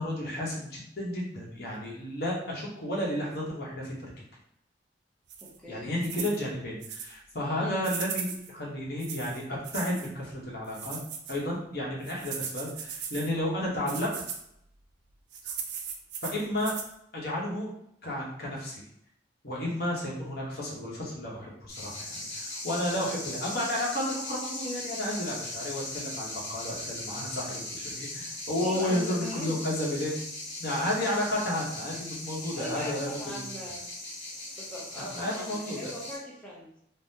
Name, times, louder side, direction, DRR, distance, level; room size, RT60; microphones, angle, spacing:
voice 1, 0.0-4.1 5.7-11.0 11.3-14.1 15.4-15.5 16.2-16.8 17.1-17.7 18.0-18.8 19.4-30.2 30.6-33.1 33.3-33.5 35.0-35.9, left 1 dB, 55° left, -3 dB, 0.8 m, -32 dB
sound 1, 5.3-5.6 6.0-6.4 6.8-7.1 7.8-8.5 9.0-10.1 10.7-11.4 12.0-13.3 13.9-14.4 15.3-16.9, right 7 dB, 65° right, 0.4 m, -38 dB
voice 2, 5.4-6.0 7.6-7.9 28.6-29.6 32.5-33.8 34.5-36.8, equal, 5° left, -6 dB, 0.6 m, -40 dB
sound 2, 21.7-36.2, left 2 dB, 85° left, 1.1 m, -39 dB
3.5 x 2.0 x 2.7 m, 0.75 s
head